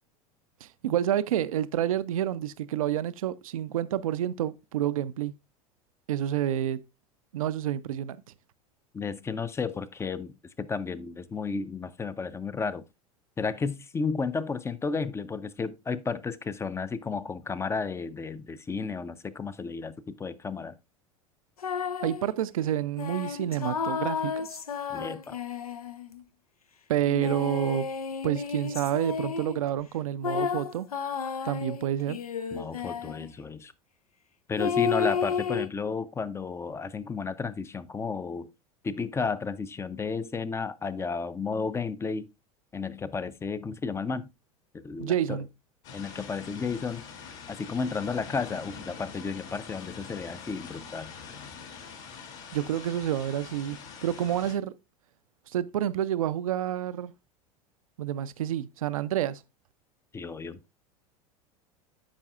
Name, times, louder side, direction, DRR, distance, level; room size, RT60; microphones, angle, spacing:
voice 1, 0.6-5.3 6.1-6.8 7.3-8.2 22.0-24.6 26.9-27.9 28.2-30.9 31.4-32.2 45.0-45.5 52.5-54.7 55.5-57.1 58.0-59.4, right 11 dB, 65° right, 0.5 m, -29 dB
voice 2, 8.9-12.8 13.4-20.7 24.9-25.4 32.5-33.7 34.5-38.5 38.8-42.3 42.7-44.3 44.7-45.4 45.9-47.1 47.5-51.1 60.1-60.6, left 5 dB, 15° left, 0.5 m, -33 dB
sound 1, 21.6-22.2 23.0-26.2 27.1-29.6 30.2-33.3 34.6-35.7, left 6 dB, 80° left, 0.6 m, -32 dB
sound 2, 45.8-54.6, left 6 dB, 55° left, 2.3 m, -44 dB
12.5 x 5.4 x 2.4 m
figure-of-eight pair, 80°, 19 cm